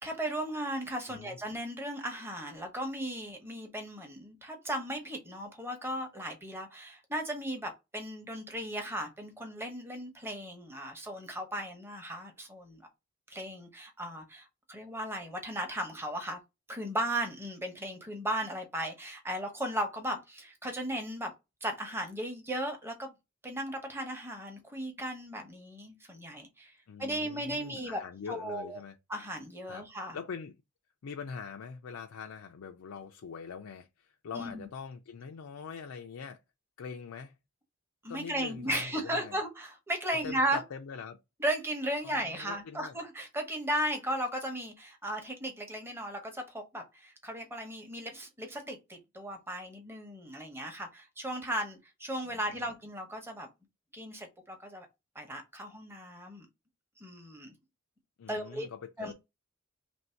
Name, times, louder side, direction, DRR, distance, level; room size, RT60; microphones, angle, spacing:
voice 1, 0.0-12.9 13.3-16.4 16.7-21.3 21.6-23.1 23.4-26.7 27.0-28.0 28.3-28.8 29.1-30.2 34.3-34.7 38.0-40.6 41.4-53.5 53.9-54.9 55.1-56.5 57.0-57.5 58.3-58.7 59.0-59.1, right 1 dB, 10° right, 0.8 m, -36 dB
voice 2, 26.9-28.9 29.7-29.9 30.1-30.6 31.0-36.4 36.8-37.3 38.1-39.4 40.1-41.2 42.0-43.0 52.2-52.7 58.2-59.1, left 6 dB, 85° left, 0.4 m, -43 dB
3.0 x 2.6 x 4.4 m
head